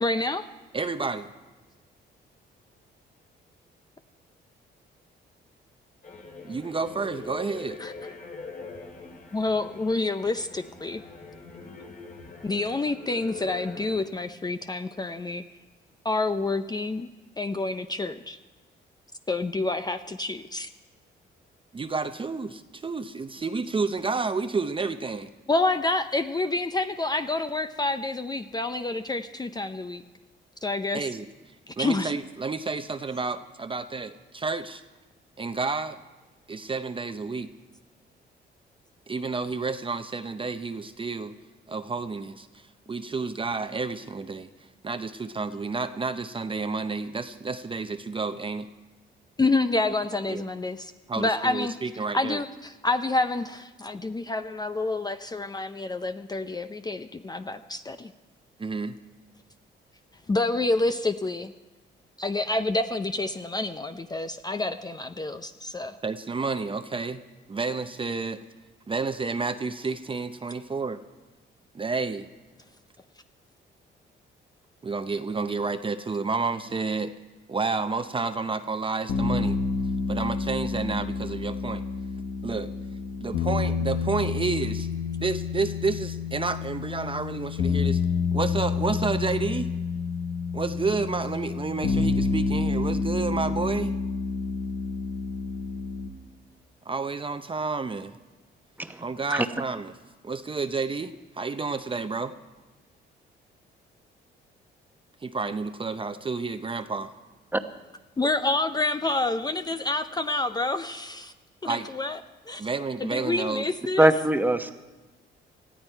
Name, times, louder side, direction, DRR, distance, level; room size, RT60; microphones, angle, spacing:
voice 1, 0.0-0.4 9.3-11.0 12.4-15.4 16.1-17.1 17.4-18.4 19.3-20.7 25.5-30.0 30.6-31.0 31.8-32.1 49.4-50.8 51.2-51.7 52.1-52.5 52.8-58.1 60.3-61.5 62.2-65.9 108.2-111.3 112.0-112.2 112.5-112.6 113.1-114.1, left 2 dB, 20° left, 9 dB, 0.5 m, -28 dB
voice 2, 0.7-1.3 6.4-7.8 21.7-25.3 30.9-31.3 31.8-34.8 35.4-36.0 36.5-37.5 39.1-41.4 41.7-44.5 44.8-48.7 50.3-50.5 51.1-52.4 58.6-58.9 66.0-67.2 67.5-68.4 68.9-71.0 71.7-72.3 74.8-77.1 77.5-79.6 80.1-81.8 82.4-82.7 83.2-84.9 85.2-88.0 88.3-89.7 90.5-94.0 96.9-98.2 99.0-99.9 100.2-102.3 105.2-107.1 111.7-111.9 112.6-113.7, right 4 dB, 25° right, 9 dB, 0.7 m, -30 dB
sound 1, 6.0-14.0, left 4 dB, 40° left, 3.0 m, -43 dB
sound 2, 79.1-96.1, left 4 dB, 85° left, 1.6 m, -29 dB
voice 3, 114.0-114.7, right 1 dB, 10° right, 8 dB, 1.0 m, -21 dB
19.5 x 14.0 x 4.5 m, 1.2 s
cardioid pair, 90°, 20 cm